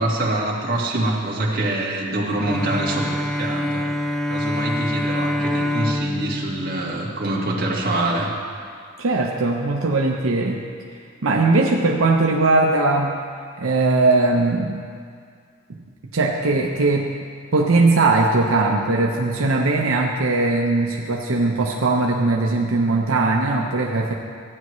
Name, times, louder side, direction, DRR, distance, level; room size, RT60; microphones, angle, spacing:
voice 1, 0.0-8.3, right 1 dB, 45° right, -4 dB, 1.7 m, -25 dB
Bowed string instrument, 2.4-7.8, left 1 dB, ahead, 0.4 m, -26 dB
voice 2, 9.0-10.7 11.2-13.2 13.6-14.8 15.7-15.8 16.1-17.2 17.5-24.1, right 3 dB, 85° right, 0 dB, 0.8 m, -19 dB
15.5 x 9.6 x 3.1 m, 2.2 s
head